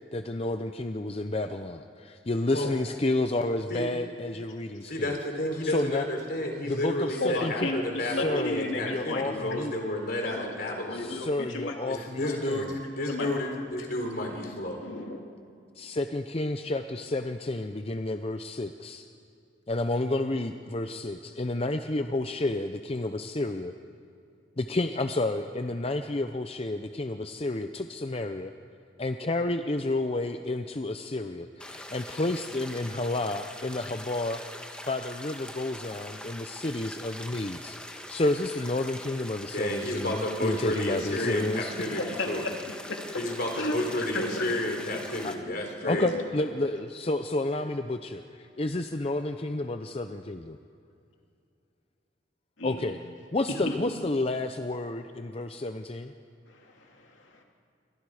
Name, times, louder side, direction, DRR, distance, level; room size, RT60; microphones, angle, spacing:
voice 1, 0.1-5.2 5.6-6.1 6.6-7.7 8.0-9.7 10.9-12.7 15.8-19.1 19.7-23.7 24.6-28.5 29.0-34.6 34.9-41.7 45.2-45.3 45.9-50.6 52.6-53.0 53.3-56.1, left 2 dB, 30° left, 7 dB, 0.6 m, -30 dB
voice 2, 4.9-11.1 11.9-14.8 39.5-42.4 43.2-46.1, left 1 dB, 50° left, 3 dB, 3.7 m, -31 dB
voice 3, 7.2-9.6 10.2-10.5 10.9-11.7 13.1-13.3 14.8-15.2 40.7-40.8 42.2-42.3 42.9-43.0 43.5-43.7 44.0-44.4 45.9-46.2 52.6-52.9 53.7-53.8 56.5-57.4, left 2 dB, 85° left, 1 dB, 2.6 m, -33 dB
sound 1, 31.6-45.3, left 1 dB, 5° left, 1.4 m, -43 dB
28.0 x 24.0 x 4.9 m, 2.5 s
head